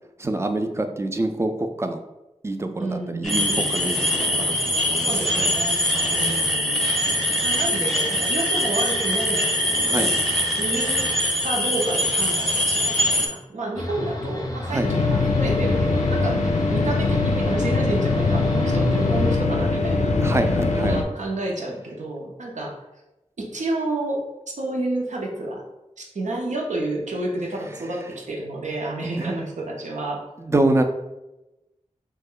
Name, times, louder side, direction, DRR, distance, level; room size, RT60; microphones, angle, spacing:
voice 1, 0.2-2.0 2.4-5.5 9.9-10.1 14.6-14.9 20.0-21.0 29.2-29.3 30.4-30.8, right 2 dB, 20° right, 6 dB, 0.4 m, -26 dB
voice 2, 2.8-3.8 4.9-5.8 6.1-6.8 7.4-9.5 10.6-11.1 11.4-16.4 16.7-20.2 20.7-22.8 23.4-24.2 24.6-25.7 26.0-30.2, right 2 dB, 80° right, -1 dB, 0.7 m, -30 dB
sound 1, 3.2-13.3, left 1 dB, ahead, 0.8 m, -23 dB
sound 2, 13.8-19.4, left 1 dB, 30° left, 0.5 m, -32 dB
sound 3, 14.8-21.0, left 3 dB, 75° left, 0.4 m, -22 dB
3.1 x 2.1 x 3.6 m, 0.97 s
cardioid pair, 40°, 12 cm